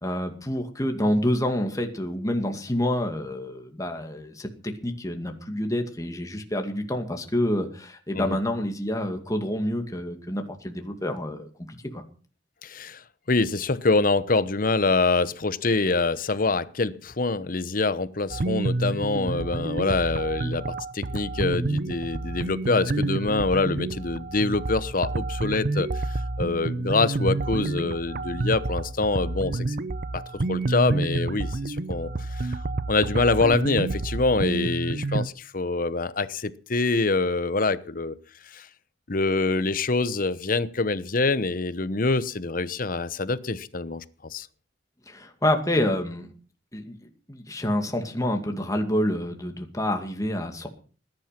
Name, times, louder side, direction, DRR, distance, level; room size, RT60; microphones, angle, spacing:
voice 1, 0.0-12.0 45.1-46.3 46.7-47.0 47.3-50.7, left 1 dB, 20° left, 4 dB, 2.3 m, -28 dB
voice 2, 12.6-29.8 30.1-30.2 30.5-32.6 32.9-38.2 38.5-38.7 39.1-44.5, left 3 dB, 50° left, 15 dB, 1.0 m, -25 dB
sound 1, 18.3-35.3, right 2 dB, 50° right, 0.7 m, -29 dB
20.0 x 10.5 x 5.9 m, 0.41 s
head